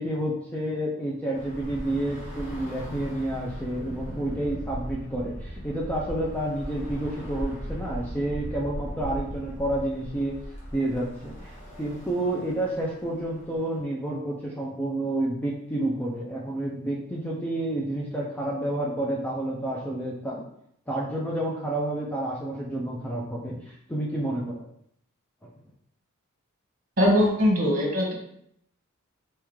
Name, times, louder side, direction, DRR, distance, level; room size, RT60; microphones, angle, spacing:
voice 1, 0.0-10.3 10.7-20.4 20.9-24.6 25.4-25.5, right 1 dB, 5° left, -4 dB, 0.5 m, -30 dB
Bus / Traffic noise roadway noise, 1.3-13.8, equal, 35° left, 1.4 m, -38 dB
voice 2, 27.0-28.1, equal, 40° right, -2 dB, 1.5 m, -21 dB
4.3 x 3.6 x 3.1 m, 0.71 s
head